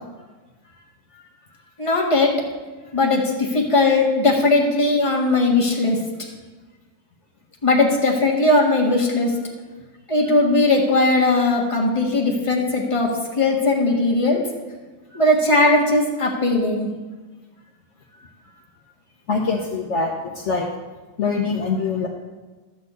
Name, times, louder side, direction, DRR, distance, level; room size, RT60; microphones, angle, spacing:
voice 1, 1.8-2.3 2.9-6.0 7.6-9.4 10.1-14.4 15.1-16.9, left 2 dB, 20° left, -2 dB, 1.6 m, -18 dB
voice 2, 19.3-20.7 21.2-22.1, left 4 dB, 55° left, -1 dB, 1.3 m, -23 dB
12.0 x 4.1 x 8.1 m, 1.3 s
omnidirectional pair, 1.6 m